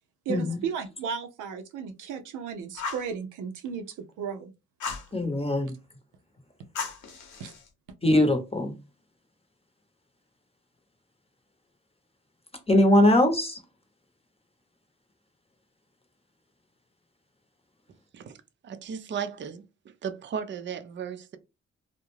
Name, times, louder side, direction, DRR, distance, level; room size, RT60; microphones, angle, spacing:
voice 1, 0.3-4.5 7.4-7.5, right 6 dB, 80° right, 0.6 m, -35 dB
Fire, 2.8-3.1 4.8-5.1 6.8-7.7, left 5 dB, 70° left, 0.9 m, -35 dB
voice 2, 5.1-5.7 8.0-8.7 12.7-13.6, left 1 dB, 20° left, 0.8 m, -21 dB
voice 3, 18.6-19.6 20.0-21.4, right 7 dB, 40° right, 0.5 m, -35 dB
2.3 x 2.1 x 3.1 m
supercardioid pair, 55°, 31 cm